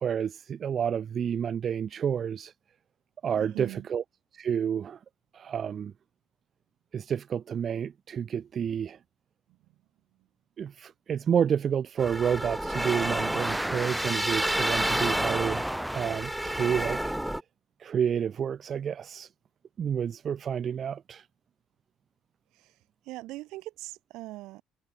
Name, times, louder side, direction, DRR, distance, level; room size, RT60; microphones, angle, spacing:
voice 1, 0.0-2.5 3.2-4.0 4.3-5.0 5.3-5.9 6.9-9.0 10.6-15.6 15.9-17.1 17.8-19.3 19.8-21.3, right 8 dB, 45° right, 0.3 m, -29 dB
voice 2, 3.4-3.9 9.5-9.6 22.5-22.8 23.0-24.6, right 19 dB, 75° right, 7.9 m, -41 dB
sound 1, 12.0-17.4, right 1 dB, 5° right, 0.9 m, -29 dB
cardioid pair, 100°, 0 cm